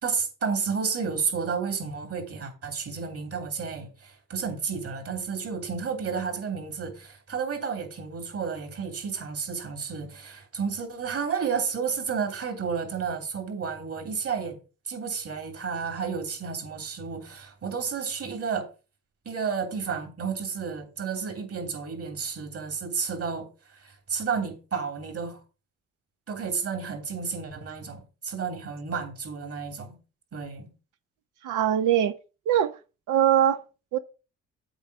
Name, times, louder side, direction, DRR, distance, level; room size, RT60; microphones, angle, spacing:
voice 1, 0.0-14.6 14.8-18.7 19.2-25.4 26.3-29.9 30.3-30.7, right 6 dB, 50° right, 3.2 m, -31 dB
voice 2, 31.4-32.1 32.5-32.7 33.1-33.6 33.9-34.0, right 10 dB, 85° right, 0.9 m, -21 dB
8.0 x 4.6 x 7.2 m
cardioid pair, 90°, 30 cm